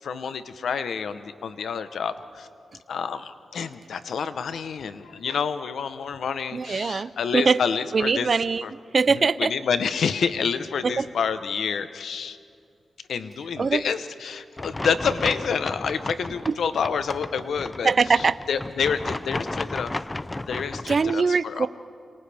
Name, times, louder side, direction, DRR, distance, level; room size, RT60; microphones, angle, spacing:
voice 1, 0.0-2.5 2.9-8.3 8.6-8.7 9.1-12.4 13.1-19.9 20.5-21.7, left 6 dB, 80° left, 11 dB, 0.9 m, -28 dB
voice 2, 6.5-7.6 7.9-9.5 10.8-11.1 13.6-13.8 16.5-16.6 17.8-18.4 20.9-21.7, right 4 dB, 50° right, 17 dB, 0.4 m, -22 dB
sound 1, 14.6-21.1, left 2 dB, 20° left, 0.5 m, -33 dB
29.0 x 26.5 x 3.5 m, 2.3 s
cardioid pair, 75°, 0 cm